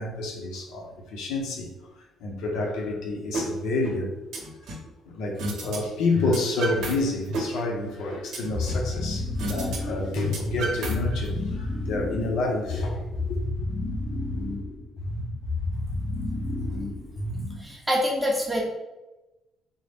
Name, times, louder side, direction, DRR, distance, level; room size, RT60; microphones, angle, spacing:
voice 1, 0.0-1.7 2.2-4.1 5.0-13.4, left 2 dB, 85° left, 0 dB, 0.7 m, -29 dB
sound 1, 3.3-3.5 3.8-4.9 5.4-5.8 6.0-6.9 7.2-8.9 9.4-9.8 10.0-11.3, equal, 70° right, 0.8 m, -31 dB
sound 2, 8.5-17.7, left 2 dB, 30° left, 0.6 m, -30 dB
voice 2, 17.6-18.6, equal, 5° right, -2 dB, 0.7 m, -25 dB
3.6 x 2.1 x 3.4 m, 1.0 s
cardioid pair, 155°, 0 cm